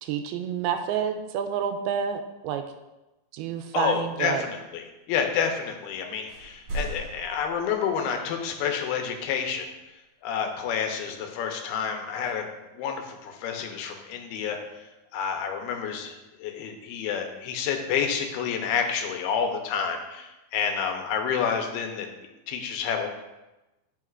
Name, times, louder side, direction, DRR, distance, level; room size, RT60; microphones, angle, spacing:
voice 1, 0.0-2.6 3.3-4.4, right 8 dB, 85° right, 6 dB, 2.6 m, -29 dB
voice 2, 3.7-9.7 10.2-12.5 12.7-14.6 15.1-22.1 22.5-23.1, left 7 dB, 90° left, 4 dB, 2.8 m, -29 dB
sound 1, 5.8-6.0 6.3-8.3, right 1 dB, 60° right, 3.1 m, -37 dB
11.0 x 6.1 x 2.5 m, 1.0 s
omnidirectional pair, 4.3 m